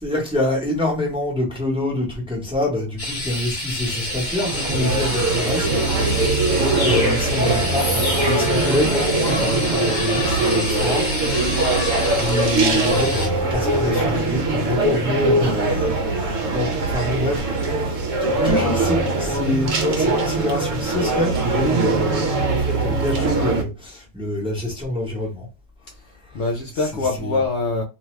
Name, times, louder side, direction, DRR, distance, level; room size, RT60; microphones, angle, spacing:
voice 1, 0.0-5.7 6.0-11.1 11.4-11.8 12.1-15.8 16.1-25.5 27.2-27.4, left 1 dB, 5° right, 0.8 m, -26 dB
sound 1, 3.0-13.3, left 1 dB, 35° left, 1.3 m, -28 dB
sound 2, 3.9-23.6, right 3 dB, 75° right, 1.0 m, -22 dB
sound 3, 5.9-14.0, left 4 dB, 80° left, 0.4 m, -36 dB
voice 2, 15.4-16.3 26.3-27.8, left 3 dB, 65° left, 0.8 m, -25 dB
2.6 x 2.3 x 3.1 m
omnidirectional pair, 1.4 m